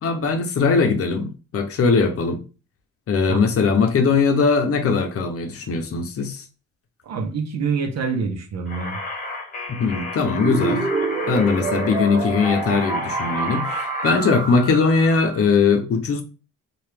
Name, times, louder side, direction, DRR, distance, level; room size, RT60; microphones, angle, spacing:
voice 1, 0.0-2.4 3.1-6.4 9.7-10.9 11.3-16.2, left 4 dB, 50° left, 0.7 m, -20 dB
voice 2, 7.0-9.0, right 5 dB, 60° right, 0.8 m, -26 dB
sound 1, 8.7-14.6, left 2 dB, 30° left, 1.0 m, -32 dB
sound 2, 10.4-15.4, right 4 dB, 15° right, 0.4 m, -27 dB
2.9 x 2.5 x 3.3 m
cardioid pair, 90°, 30 cm